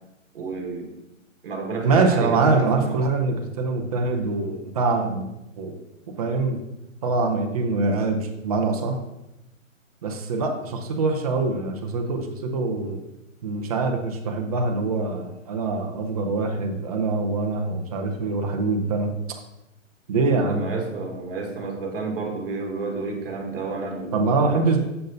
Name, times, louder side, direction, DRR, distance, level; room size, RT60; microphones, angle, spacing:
voice 1, 0.3-0.9 1.4-3.0 20.5-24.8, right 3 dB, 45° right, 2 dB, 1.6 m, -31 dB
voice 2, 1.8-5.3 5.6-5.8 6.2-6.6 7.0-9.0 10.0-13.0 13.4-19.1 20.1-20.7 24.1-24.8, right 3 dB, 30° right, 2 dB, 0.7 m, -24 dB
6.6 x 6.2 x 2.7 m, 0.89 s
hypercardioid pair, 155°, 40 cm